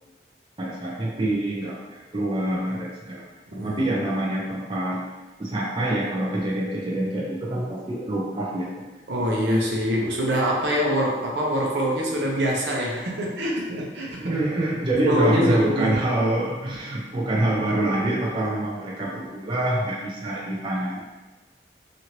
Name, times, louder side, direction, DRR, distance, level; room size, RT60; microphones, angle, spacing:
voice 1, 0.6-3.2 3.5-5.0 5.4-8.9 14.2-21.0, right 1 dB, 25° right, -4 dB, 0.4 m, -26 dB
voice 2, 3.5-4.0 9.1-14.4 15.0-16.0, equal, 75° right, -2 dB, 0.6 m, -24 dB
2.9 x 2.5 x 2.9 m, 1.2 s
head